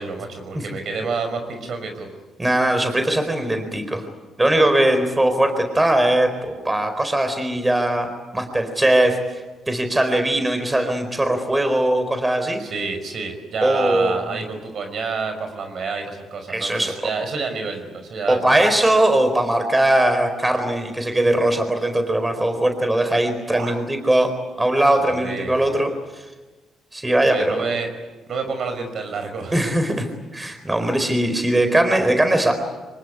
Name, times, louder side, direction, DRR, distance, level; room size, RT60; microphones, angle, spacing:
voice 1, 0.0-2.1 12.6-18.7 23.5-23.8 25.1-25.8 27.2-27.9 28.3-29.7, right 4 dB, 60° right, 6 dB, 5.5 m, -29 dB
voice 2, 2.4-4.0 4.4-12.6 13.6-14.4 16.5-16.9 18.3-26.2 26.9-27.6 29.5-29.9 30.3-32.5, right 1 dB, 15° right, 7 dB, 4.3 m, -20 dB
25.5 x 20.0 x 9.8 m, 1.2 s
cardioid pair, 75°, 0 cm